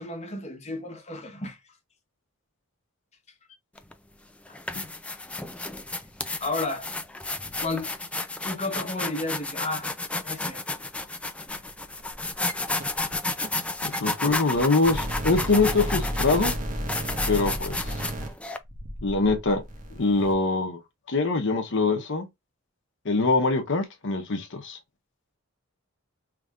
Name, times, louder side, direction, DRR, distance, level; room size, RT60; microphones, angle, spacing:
voice 1, 0.0-1.6 4.5-4.6 6.4-6.9 7.6-7.9 8.4-9.9 10.2-10.6, left 2 dB, 30° left, 1.0 m, -32 dB
sound 1, 3.8-3.9 4.5-18.6, left 2 dB, 5° left, 0.3 m, -32 dB
sound 2, 11.5-11.7 12.0-12.5 12.8-13.2 13.4-13.5 13.9-14.0 14.2-14.3 14.6-14.7 14.9-20.3, equal, 35° right, 1.2 m, -33 dB
voice 2, 14.0-16.5 17.3-17.8 19.0-19.6 20.0-20.8 21.1-22.3 23.0-24.8, left 3 dB, 55° left, 0.8 m, -23 dB
5.0 x 3.3 x 2.4 m
head